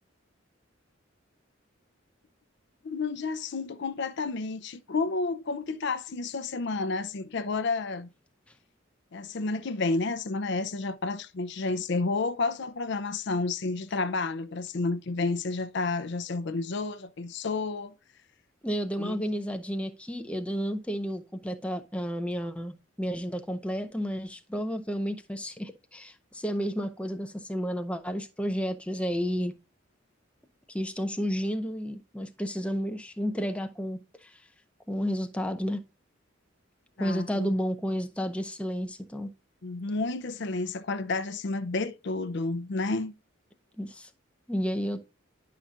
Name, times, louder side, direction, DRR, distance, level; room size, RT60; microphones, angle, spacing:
voice 1, 2.8-8.1 9.1-17.9 19.0-19.2 37.0-37.5 39.6-43.1, left 3 dB, 60° left, 0.6 m, -31 dB
voice 2, 18.6-29.5 30.7-34.0 34.9-35.8 37.0-39.3 43.8-44.1 44.5-45.0, equal, 5° left, 0.6 m, -31 dB
10.5 x 5.7 x 2.4 m
head